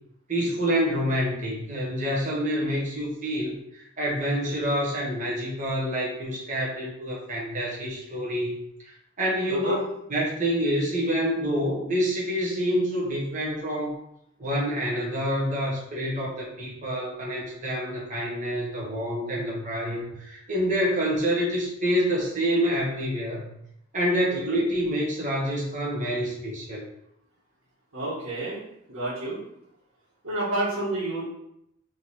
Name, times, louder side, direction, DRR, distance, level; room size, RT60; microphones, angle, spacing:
voice 1, 0.3-9.8 10.1-14.0 14.4-23.5 23.9-26.8, equal, 35° right, -4 dB, 1.4 m, -27 dB
voice 2, 9.5-9.8 24.3-24.6 27.9-28.6 28.9-29.4 30.2-31.2, right 2 dB, 85° right, -12 dB, 1.7 m, -30 dB
3.9 x 3.1 x 4.2 m, 0.78 s
head